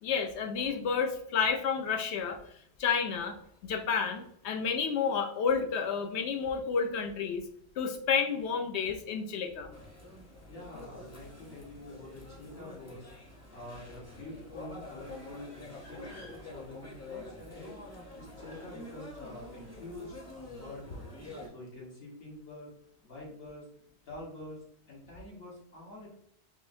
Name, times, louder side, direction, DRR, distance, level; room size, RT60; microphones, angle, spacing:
voice 1, 0.0-2.4 2.8-3.4 3.6-7.4 7.8-9.7, left 6 dB, 75° left, 5 dB, 0.9 m, -30 dB
sound 1, 9.7-21.5, left 2 dB, 15° left, 0.7 m, -47 dB
voice 2, 10.5-13.1 13.5-17.8 18.2-21.1 21.5-22.7 23.0-23.6 24.1-26.2, left 1 dB, 60° left, -4 dB, 1.5 m, -46 dB
5.5 x 2.1 x 2.5 m, 0.70 s
omnidirectional pair, 1.1 m